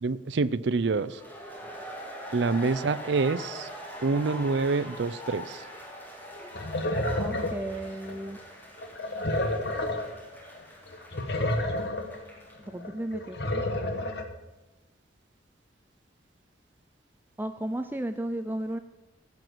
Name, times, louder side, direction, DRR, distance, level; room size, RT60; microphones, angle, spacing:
voice 1, 0.0-1.2 2.3-3.7 4.0-5.6, right 4 dB, 70° right, 17 dB, 0.5 m, -27 dB
sound 1, 1.0-12.7, equal, 10° left, 3.6 m, -43 dB
sound 2, 6.3-8.3 8.8-10.3 10.5-10.6 10.9-12.2 12.7-14.2, left 1 dB, 60° left, 1.3 m, -30 dB
voice 2, 7.2-8.4 12.7-13.6 17.4-18.8, right 1 dB, 10° right, 8 dB, 0.4 m, -34 dB
15.5 x 6.0 x 7.9 m, 1.1 s
head